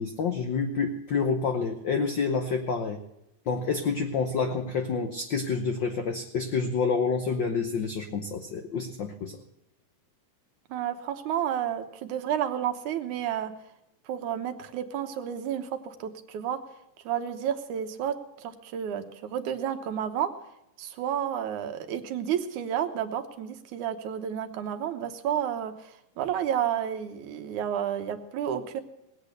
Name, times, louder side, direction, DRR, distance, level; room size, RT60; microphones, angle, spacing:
voice 1, 0.0-3.0 3.5-9.4, left 5 dB, 70° left, 6 dB, 1.1 m, -28 dB
voice 2, 10.7-13.5 14.1-16.6 17.0-20.3 20.8-28.8, right 9 dB, 90° right, 7 dB, 2.6 m, -31 dB
19.0 x 8.5 x 6.6 m, 0.85 s
omnidirectional pair, 3.3 m